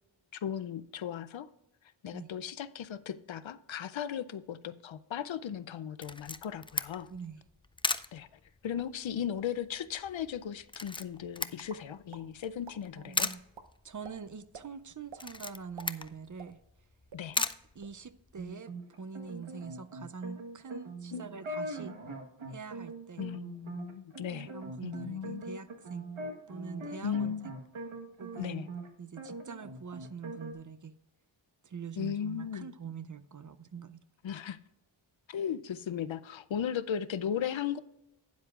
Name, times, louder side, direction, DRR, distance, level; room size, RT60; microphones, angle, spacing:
voice 1, 0.3-1.5 2.0-7.1 8.1-8.3 8.6-13.3 17.1-17.4 21.1-21.3 23.2-24.5 24.8-25.4 27.0-27.5 28.4-28.7 32.0-32.7 34.2-34.6 35.3-37.8, left 8 dB, 70° left, 0.6 m, -36 dB
Camera, 6.0-18.5, left 3 dB, 10° left, 0.3 m, -39 dB
voice 2, 7.1-7.4 13.0-13.4 13.8-16.6 17.4-17.5 17.7-21.9 22.5-23.3 24.5-26.1 26.5-27.5 28.2-28.7 29.0-30.9 31.6-34.0, right 6 dB, 40° right, 0.5 m, -44 dB
sound 1, 11.7-12.2 12.6-12.8 13.2-13.7 14.0-14.1 14.5-14.7 15.1-15.3 15.6-16.8 17.1-17.2 17.6-18.0, right 6 dB, 60° right, 0.8 m, -48 dB
sound 2, 18.4-28.9 29.2-30.5, right 2 dB, 80° right, 1.4 m, -42 dB
12.5 x 9.5 x 2.4 m
wide cardioid pair, 70°, 48 cm